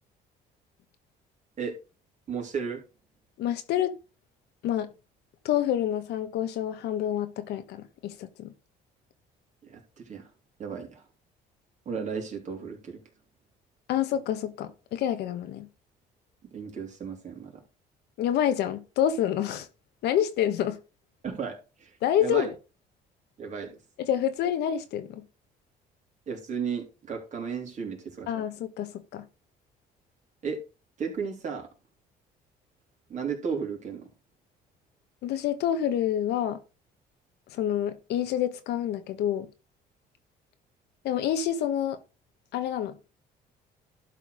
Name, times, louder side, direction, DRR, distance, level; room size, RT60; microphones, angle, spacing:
voice 1, 2.3-2.8 9.6-10.3 10.6-11.0 11.8-13.0 16.5-17.6 21.2-22.5 23.4-23.8 26.3-28.3 30.4-30.6 31.0-31.7 33.1-34.1, right 6 dB, 45° right, 3.3 m, -34 dB
voice 2, 3.4-4.0 4.6-4.9 5.4-8.5 13.9-15.7 18.2-19.7 20.0-20.8 22.0-22.5 24.0-25.2 28.3-29.2 35.2-36.6 37.5-39.5 41.0-42.0 42.5-43.0, left 10 dB, 80° left, 1.3 m, -28 dB
11.5 x 4.7 x 4.9 m
cardioid pair, 110°, 17 cm